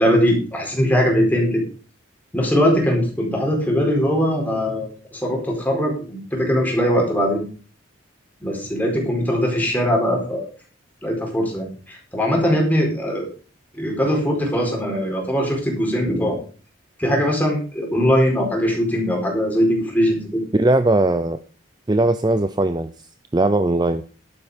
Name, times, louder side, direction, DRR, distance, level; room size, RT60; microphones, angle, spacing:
voice 1, 0.0-1.6 2.3-7.4 8.4-10.5 11.0-13.3 13.8-16.4 17.0-20.4, equal, 10° left, 0 dB, 4.6 m, -21 dB
voice 2, 20.5-21.4 21.9-22.9 23.3-24.0, right 2 dB, 20° right, 11 dB, 0.5 m, -19 dB
11.5 x 9.7 x 5.0 m, 0.38 s
head